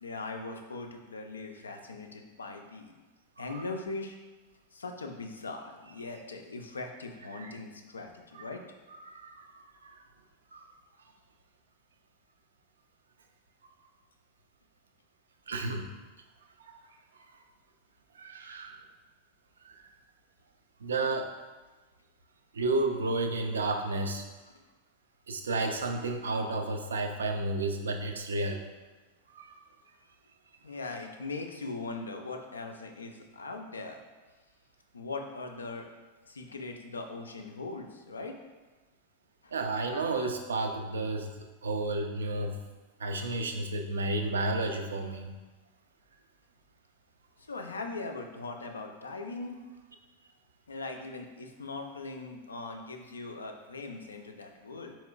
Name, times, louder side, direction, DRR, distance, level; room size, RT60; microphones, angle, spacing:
voice 1, 0.0-2.9 3.4-4.2 4.7-8.6 30.6-34.0 34.9-35.9 36.3-38.4 39.4-39.5 47.4-49.6 50.7-54.9, left 3 dB, 75° left, 3 dB, 0.4 m, -40 dB
voice 2, 9.1-9.9 10.5-10.7 15.5-15.9 18.2-18.8 20.8-21.3 22.5-24.2 25.3-28.6 29.3-29.5 39.5-41.3 41.6-42.5 43.0-45.3, right 2 dB, 70° right, 5 dB, 0.3 m, -32 dB
4.2 x 2.9 x 2.3 m, 1.2 s
figure-of-eight pair, 90°, 0 cm